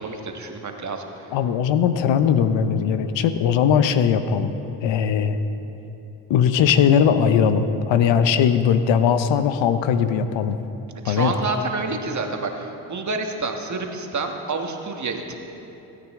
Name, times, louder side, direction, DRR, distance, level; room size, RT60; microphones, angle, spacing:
voice 1, 0.0-1.3 11.0-15.3, right 3 dB, 40° right, 3 dB, 1.5 m, -28 dB
voice 2, 1.3-4.6 4.8-5.4 6.3-10.6 11.1-11.3, left 7 dB, 70° left, 10 dB, 0.8 m, -19 dB
17.0 x 9.4 x 3.7 m, 3.0 s
supercardioid pair, 65°, 46 cm